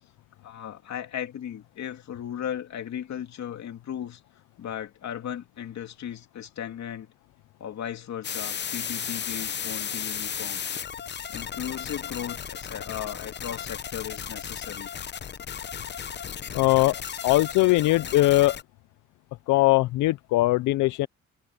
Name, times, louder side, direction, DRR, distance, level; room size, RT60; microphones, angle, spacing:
voice 1, 0.4-4.2 4.6-7.1 7.6-10.6 11.3-14.9, left 9 dB, 65° left, 2.8 m, -36 dB
sound 1, 8.2-18.6, left 8 dB, 35° left, 0.7 m, -35 dB
voice 2, 16.5-17.0 17.2-18.6 19.5-21.1, left 18 dB, 90° left, 0.6 m, -21 dB
cardioid pair, 90°, 30 cm